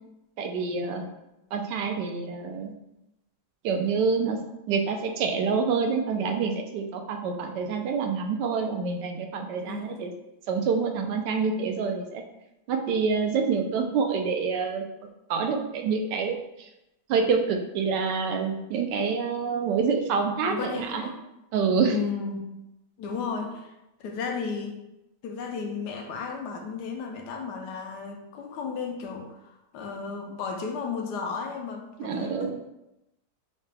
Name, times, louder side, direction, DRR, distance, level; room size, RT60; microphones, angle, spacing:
voice 1, 0.4-1.1 1.5-2.7 3.6-4.4 4.7-10.1 10.5-12.2 12.7-14.8 15.3-16.7 17.1-21.1 21.5-22.0 32.0-32.5, right 5 dB, 80° right, 4 dB, 1.2 m, -27 dB
voice 2, 9.6-10.0 20.5-21.1 21.9-22.5 23.0-23.7 24.0-24.8 25.2-32.5, left 5 dB, 75° left, 3 dB, 1.1 m, -34 dB
5.7 x 2.2 x 3.2 m, 0.91 s
omnidirectional pair, 1.9 m